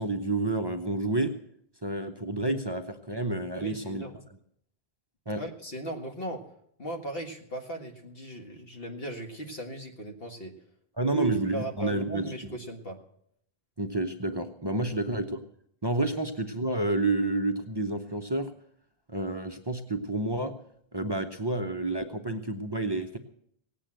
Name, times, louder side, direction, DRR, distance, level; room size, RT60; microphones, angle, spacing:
voice 1, 0.0-1.3 1.8-4.0 5.3-5.4 11.0-12.3 13.8-15.4 15.8-18.5 19.1-20.5 20.9-23.2, right 2 dB, 25° right, 5 dB, 0.8 m, -29 dB
voice 2, 3.5-4.2 5.3-6.4 6.8-10.5 11.0-13.0, right 2 dB, 70° left, 3 dB, 2.0 m, -37 dB
17.5 x 8.5 x 7.5 m, 0.69 s
omnidirectional pair, 1.0 m